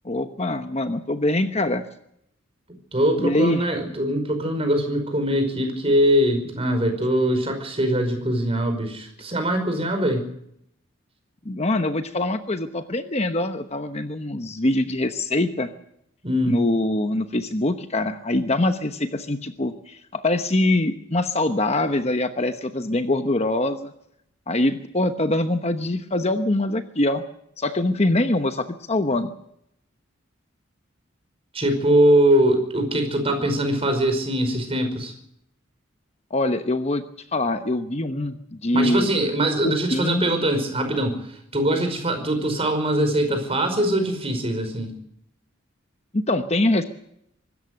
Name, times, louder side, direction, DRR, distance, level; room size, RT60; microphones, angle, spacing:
voice 1, 0.0-1.8 3.2-3.6 11.4-15.7 16.5-23.9 24.5-27.2 27.6-29.3 36.3-37.0 37.3-39.1 39.6-40.2 46.1-46.8, left 1 dB, 30° left, 8 dB, 1.0 m, -23 dB
voice 2, 2.9-10.2 16.2-16.6 31.5-35.1 38.7-41.2 41.5-44.9, right 1 dB, 30° right, 6 dB, 5.2 m, -22 dB
24.5 x 13.5 x 7.8 m, 0.73 s
head